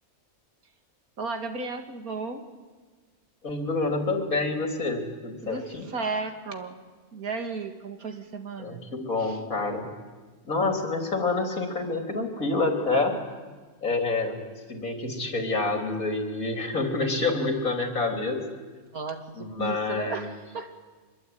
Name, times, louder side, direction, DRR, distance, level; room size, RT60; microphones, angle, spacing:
voice 1, 1.2-2.4 5.4-6.8 7.1-8.8 9.2-9.4 18.9-20.7, right 4 dB, 90° right, 6 dB, 2.6 m, -34 dB
voice 2, 3.4-5.8 8.6-9.9 10.4-13.2 13.8-14.4 14.7-18.4 19.4-20.3, left 3 dB, 75° left, 4 dB, 4.0 m, -27 dB
25.0 x 22.0 x 9.5 m, 1.4 s
omnidirectional pair, 1.5 m